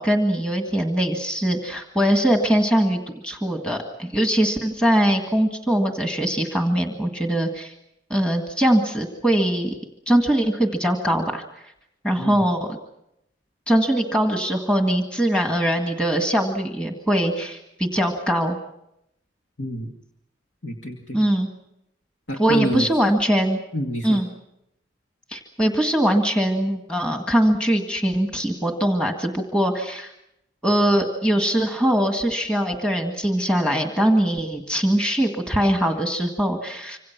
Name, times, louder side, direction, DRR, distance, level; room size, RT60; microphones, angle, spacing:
voice 1, 0.0-7.7 8.1-9.8 10.1-11.4 12.0-12.8 13.7-18.6 21.1-21.5 22.4-23.6 24.0-24.3 25.3-30.1 30.6-37.0, right 1 dB, 5° left, 3 dB, 1.8 m, -22 dB
voice 2, 19.6-19.9 20.6-21.2 22.3-22.9 23.7-24.2, equal, 75° left, 1 dB, 2.5 m, -28 dB
26.5 x 26.0 x 6.0 m, 0.82 s
head